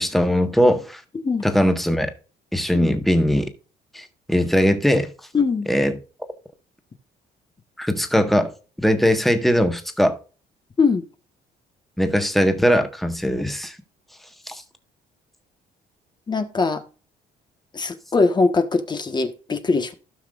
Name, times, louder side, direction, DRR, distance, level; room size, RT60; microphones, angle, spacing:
voice 1, 0.0-1.0 1.4-2.1 2.5-3.5 3.9-5.1 5.7-6.0 7.8-8.5 8.8-10.2 12.0-13.7 14.5-14.6, equal, ahead, 1.5 m, -20 dB
voice 2, 1.1-1.5 2.7-2.9 5.3-5.7 10.8-11.0 16.3-16.8 17.7-19.9, left 4 dB, 25° left, 1.3 m, -21 dB
16.5 x 6.0 x 2.5 m
cardioid pair, 110°, 17 cm